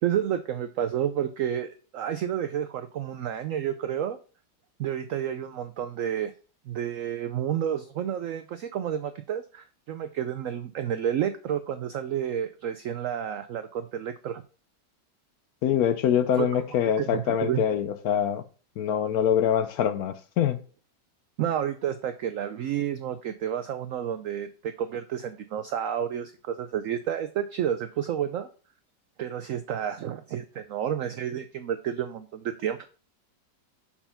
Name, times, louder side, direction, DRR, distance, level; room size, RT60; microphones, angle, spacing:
voice 1, 0.0-4.2 4.8-6.3 6.7-14.4 16.4-16.6 17.0-17.6 21.4-28.5 29.2-32.8, right 9 dB, 80° right, 0.7 m, -30 dB
voice 2, 15.6-18.4 18.8-20.6, left 9 dB, 70° left, 1.0 m, -24 dB
5.7 x 4.4 x 5.6 m
omnidirectional pair, 1.9 m